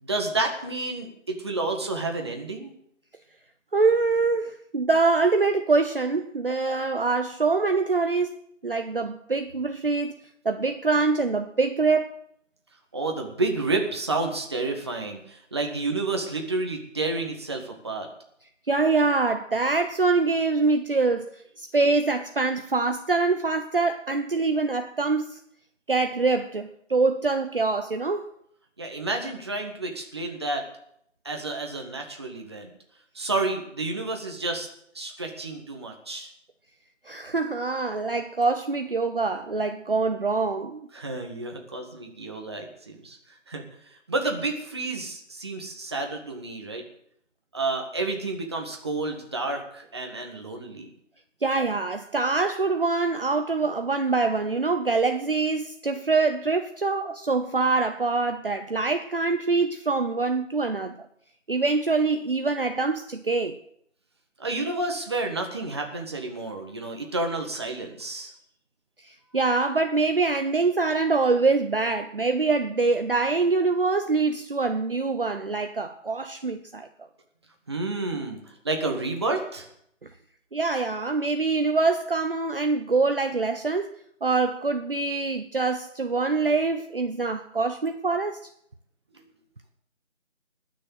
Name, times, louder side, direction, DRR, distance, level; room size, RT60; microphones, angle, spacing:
voice 1, 0.0-2.7 12.9-18.1 28.8-30.6 31.2-32.7 33.1-34.7 34.9-36.3 40.9-46.8 47.5-50.9 64.4-68.3 77.7-79.7 89.1-89.2, right 2 dB, 20° right, 1.6 m, -30 dB
voice 2, 3.7-8.4 8.6-10.1 10.4-12.2 18.7-21.3 21.6-25.4 25.9-28.2 37.1-40.9 51.4-61.0 61.5-63.6 69.0-76.9 80.5-83.9 84.2-88.4, right 3 dB, 45° right, 0.8 m, -24 dB
20.0 x 6.7 x 8.1 m
figure-of-eight pair, 170°, 37 cm